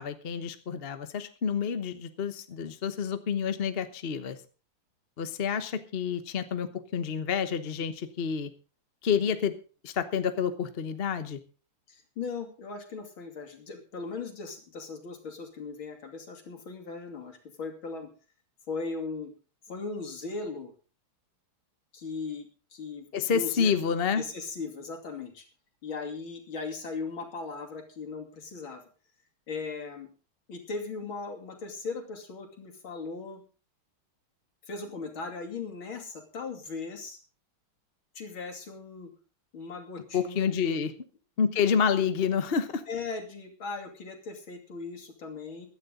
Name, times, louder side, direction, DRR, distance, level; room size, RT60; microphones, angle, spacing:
voice 1, 0.0-4.4 5.2-8.5 9.0-9.5 9.8-11.4 23.1-24.2 40.1-40.9 41.4-42.8, left 6 dB, 40° left, 9 dB, 0.9 m, -28 dB
voice 2, 11.9-18.1 18.7-19.3 19.7-20.7 21.9-23.7 24.2-25.5 25.8-28.8 29.5-30.1 30.5-33.4 34.6-37.2 38.1-39.1 39.5-40.8 42.9-45.7, left 4 dB, 65° left, 4 dB, 3.4 m, -38 dB
16.0 x 12.0 x 3.8 m, 0.35 s
omnidirectional pair, 2.4 m